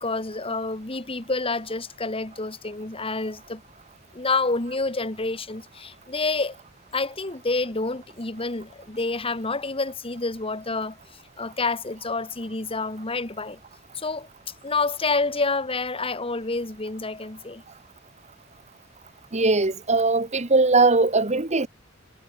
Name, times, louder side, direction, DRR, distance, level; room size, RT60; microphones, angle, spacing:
voice 1, 0.0-3.6 4.1-6.6 6.9-11.0 11.4-13.6 14.0-14.3 14.6-17.6, left 3 dB, 30° left, 1.9 m, -28 dB
voice 2, 19.3-21.7, right 3 dB, 35° right, 1.6 m, -20 dB
head